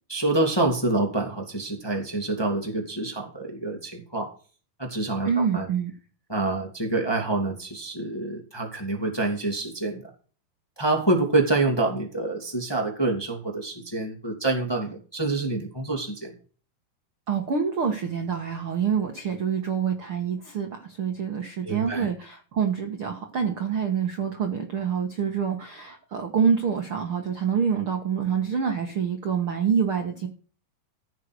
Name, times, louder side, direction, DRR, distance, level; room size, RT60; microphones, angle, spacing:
voice 1, 0.1-4.3 4.8-5.7 6.3-10.0 10.8-16.3 21.6-22.1, right 2 dB, 10° left, 1 dB, 1.9 m, -27 dB
voice 2, 5.2-5.9 17.3-30.3, right 7 dB, 50° right, 4 dB, 1.7 m, -26 dB
15.0 x 6.6 x 6.3 m, 0.39 s
omnidirectional pair, 4.4 m